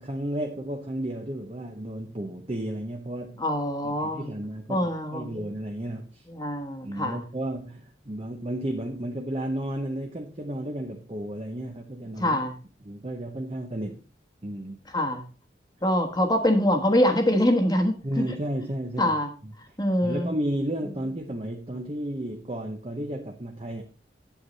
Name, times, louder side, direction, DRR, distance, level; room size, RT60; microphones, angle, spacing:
voice 1, 0.0-3.4 4.0-6.3 6.8-12.4 12.8-14.0 14.4-14.9 18.0-19.2 19.4-19.5 20.0-23.8, right 1 dB, 30° right, 3 dB, 0.9 m, -33 dB
voice 2, 3.4-4.3 4.7-5.4 6.3-7.3 12.2-12.6 14.9-15.3 15.8-18.2 19.0-19.3 19.8-20.3, left 1 dB, 20° left, 4 dB, 1.3 m, -24 dB
8.3 x 8.0 x 4.1 m, 0.35 s
head